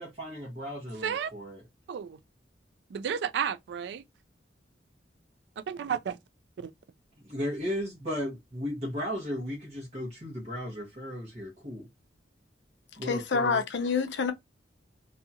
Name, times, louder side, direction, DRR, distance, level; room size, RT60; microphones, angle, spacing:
voice 1, 0.0-1.6 7.2-11.9 13.0-13.6, equal, 35° right, 1.0 m, -35 dB
voice 2, 2.9-4.0 5.7-6.2, right 7 dB, 65° right, 0.3 m, -31 dB
voice 3, 13.0-14.3, left 5 dB, 75° left, 0.5 m, -27 dB
2.7 x 2.3 x 2.7 m
head